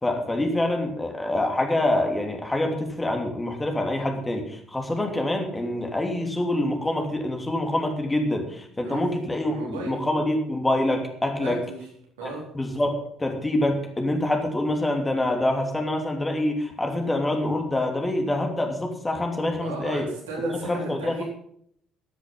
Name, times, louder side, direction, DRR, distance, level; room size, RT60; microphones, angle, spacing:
voice 1, 0.0-11.6 12.2-20.1 20.4-21.2, left 1 dB, 15° left, 3 dB, 3.1 m, -26 dB
voice 2, 9.5-9.9 11.4-11.9 12.2-12.5 19.6-21.2, right 2 dB, 70° right, -2 dB, 4.4 m, -34 dB
13.5 x 10.5 x 5.7 m, 0.67 s
figure-of-eight pair, 50°, 0 cm